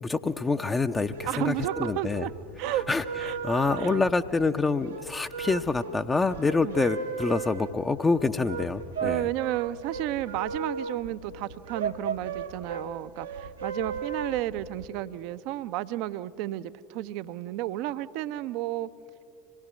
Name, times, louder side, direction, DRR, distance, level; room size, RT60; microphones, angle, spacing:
voice 1, 0.0-2.3 2.9-9.3, left 3 dB, 20° left, 6 dB, 0.6 m, -27 dB
sound 1, 0.9-14.9, right 5 dB, 80° right, 0.9 m, -36 dB
voice 2, 1.3-2.3 2.6-2.8 3.2-3.4 3.8-3.9 6.6-6.8 9.0-18.9, right 14 dB, 55° right, 14 dB, 0.5 m, -32 dB
25.5 x 18.5 x 6.3 m, 2.5 s
figure-of-eight pair, 70°, 0 cm